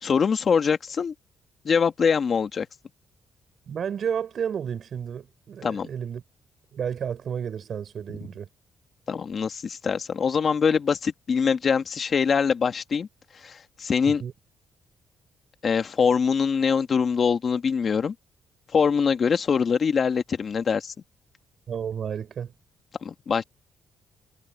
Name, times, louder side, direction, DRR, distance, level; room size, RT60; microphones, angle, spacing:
voice 1, 0.0-1.1 1.7-2.7 5.6-5.9 9.1-13.1 13.3-14.2 15.6-18.1 18.7-20.9 23.0-23.4, left 6 dB, 45° left, 1.7 m, -23 dB
voice 2, 3.7-6.2 6.7-8.5 14.1-14.3 21.7-22.5, right 8 dB, 55° right, 6.4 m, -31 dB
cardioid pair, 90°, 0 cm